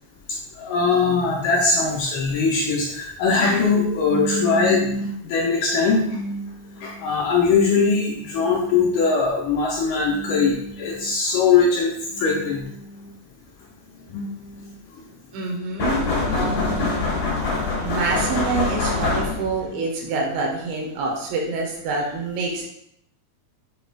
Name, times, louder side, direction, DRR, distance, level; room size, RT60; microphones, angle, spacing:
voice 1, 0.6-13.1 14.1-14.7, left 4 dB, 80° left, -2 dB, 2.0 m, -21 dB
voice 2, 15.3-17.3 17.8-22.6, right 3 dB, 85° right, -1 dB, 2.7 m, -27 dB
sound 1, 15.8-19.7, left 3 dB, 50° left, 2.4 m, -24 dB
6.8 x 2.4 x 3.2 m, 0.73 s
omnidirectional pair, 4.3 m